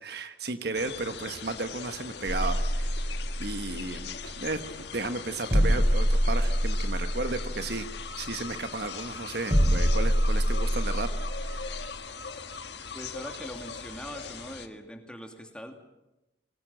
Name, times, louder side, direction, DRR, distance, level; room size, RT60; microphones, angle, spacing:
voice 1, 0.0-3.0 3.4-11.6, right 3 dB, 55° right, 9 dB, 1.3 m, -34 dB
sound 1, 0.7-14.7, left 5 dB, 60° left, 1.6 m, -40 dB
sound 2, 2.3-11.9, equal, 35° right, 4.5 m, -27 dB
voice 2, 12.9-15.7, equal, 5° left, 4 dB, 2.5 m, -42 dB
24.0 x 19.5 x 8.9 m, 0.98 s
head